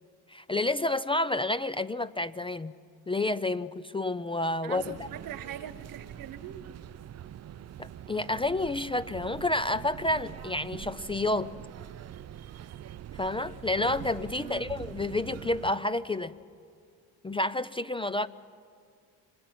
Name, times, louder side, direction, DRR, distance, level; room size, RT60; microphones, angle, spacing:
voice 1, 0.3-2.7 3.1-5.1 7.8-11.5 13.2-16.3 17.2-18.3, left 2 dB, 15° left, 14 dB, 0.5 m, -29 dB
voice 2, 4.6-6.6 14.3-14.7, right 10 dB, 60° right, 14 dB, 1.3 m, -42 dB
sound 1, 4.8-15.7, right 11 dB, 45° right, 0.6 m, -44 dB
27.0 x 21.0 x 6.0 m, 2.3 s
supercardioid pair, 80°, 38 cm